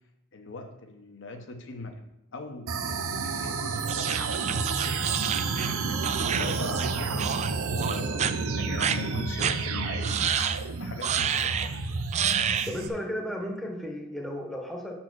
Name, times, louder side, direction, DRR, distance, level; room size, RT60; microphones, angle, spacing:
voice 1, 0.3-2.0 2.3-12.0, left 2 dB, 60° left, 5 dB, 0.9 m, -41 dB
sound 1, 2.7-12.9, right 4 dB, 85° right, 0.7 m, -30 dB
sound 2, 3.9-6.9 7.2-7.5 7.8-8.3 8.8-9.0 9.4-9.6 10.0-10.6 11.0-11.7 12.1-12.7, right 8 dB, 30° right, 0.3 m, -29 dB
voice 2, 12.7-14.9, left 1 dB, ahead, 0 dB, 0.9 m, -34 dB
6.3 x 4.4 x 6.0 m, 0.85 s
head